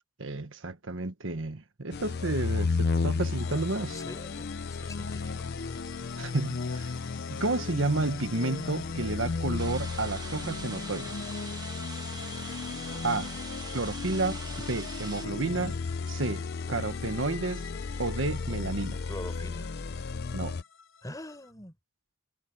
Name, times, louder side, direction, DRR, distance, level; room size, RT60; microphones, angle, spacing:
voice 1, 0.2-4.0 6.2-6.9 7.3-11.1 13.0-13.3 13.7-15.7 16.1-17.7 18.0-19.0 20.3-20.6, right 2 dB, 70° right, 1.4 m, -31 dB
sound 1, 1.9-20.6, left 4 dB, 50° left, 0.5 m, -34 dB
sound 2, 3.4-21.5, left 7 dB, 85° left, 5.9 m, -48 dB
voice 2, 3.9-5.5 12.8-13.1 19.1-19.7 21.0-21.8, left 1 dB, 15° left, 6.8 m, -44 dB
sound 3, 9.6-15.3, right 4 dB, 20° right, 1.2 m, -44 dB
head